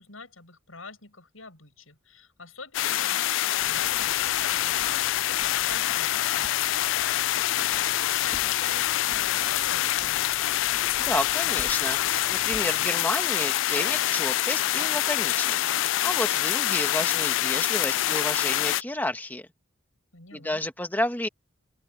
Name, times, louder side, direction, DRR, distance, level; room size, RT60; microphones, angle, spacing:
voice 1, 0.0-6.7 7.0-10.3 20.1-20.6, left 4 dB, 80° left, 7.5 m, -46 dB
sound 1, 2.7-18.8, left 14 dB, 65° left, 0.3 m, -25 dB
Writing, 3.6-12.9, left 1 dB, 30° left, 1.3 m, -48 dB
voice 2, 11.0-15.7 16.0-19.5 20.3-21.3, left 1 dB, 10° left, 1.8 m, -31 dB
open air
head